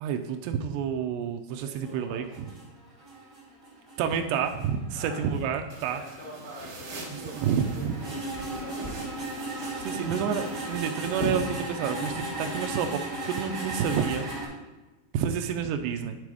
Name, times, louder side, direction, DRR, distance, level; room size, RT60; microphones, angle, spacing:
voice 1, 0.0-2.2 4.0-6.0 7.1-8.0 9.8-14.3 15.1-16.2, right 7 dB, 85° right, 6 dB, 2.5 m, -29 dB
voice 2, 1.6-2.2 4.9-5.3 5.9-9.2 9.8-10.5, left 1 dB, 85° left, -5 dB, 0.8 m, -46 dB
sound 1, 1.8-14.5, right 2 dB, 25° right, 3.1 m, -37 dB
sound 2, 5.7-13.8, right 1 dB, 45° right, 3.9 m, -40 dB
11.0 x 4.1 x 4.8 m, 1.1 s
omnidirectional pair, 5.2 m